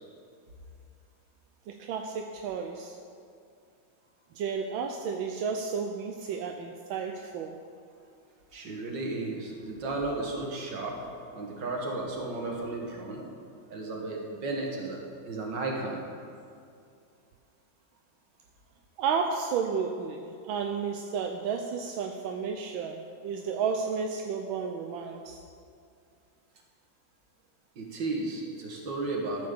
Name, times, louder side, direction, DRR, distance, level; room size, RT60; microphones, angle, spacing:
voice 1, 1.7-3.0 4.3-7.6 19.0-25.4, right 6 dB, 85° right, 3 dB, 1.5 m, -32 dB
voice 2, 8.5-13.2 13.7-16.0 27.8-29.5, right 2 dB, 65° right, 0 dB, 2.2 m, -34 dB
13.5 x 5.2 x 6.8 m, 2.4 s
omnidirectional pair, 2.1 m